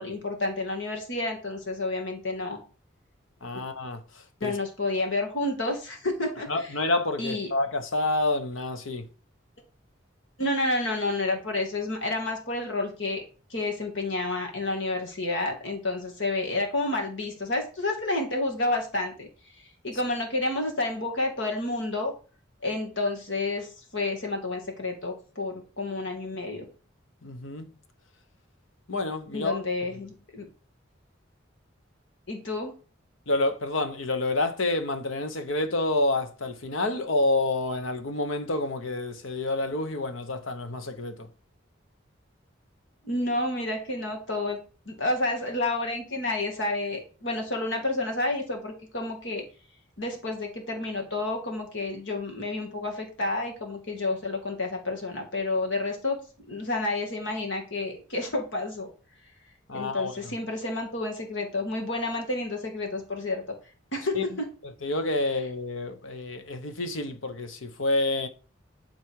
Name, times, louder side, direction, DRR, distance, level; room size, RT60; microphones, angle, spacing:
voice 1, 0.0-2.6 3.5-3.6 4.4-6.5 7.2-7.5 10.4-13.2 13.5-19.3 19.8-22.1 22.6-26.7 29.3-30.5 32.3-32.7 43.0-44.6 44.9-49.4 50.0-56.2 56.5-58.9 59.7-63.4 63.9-64.1, left 2 dB, 70° left, 2.4 m, -30 dB
voice 2, 3.4-4.6 6.5-9.1 27.2-27.7 28.9-29.6 33.3-41.3 59.7-60.3 64.1-64.4 64.6-68.3, left 2 dB, 85° left, 1.2 m, -28 dB
11.5 x 4.3 x 4.8 m
head